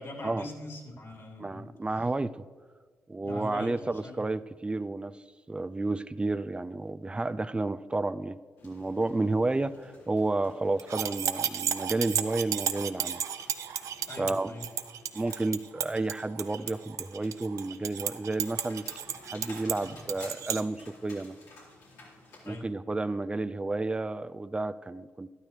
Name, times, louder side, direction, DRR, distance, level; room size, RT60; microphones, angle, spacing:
voice 1, 0.0-2.0 3.2-4.3 14.1-14.7 22.4-22.7, left 1 dB, 55° left, -1 dB, 3.2 m, -42 dB
voice 2, 1.4-2.4 3.1-5.1 5.5-13.2 14.2-14.5 15.1-18.9 19.3-21.4 22.5-25.3, right 2 dB, 20° right, 14 dB, 0.5 m, -31 dB
sound 1, 8.6-22.6, left 2 dB, 85° left, 3.8 m, -53 dB
sound 2, 10.8-20.6, right 9 dB, 75° right, 0.6 m, -33 dB
12.0 x 12.0 x 3.3 m, 1.5 s
supercardioid pair, 55°, 5 cm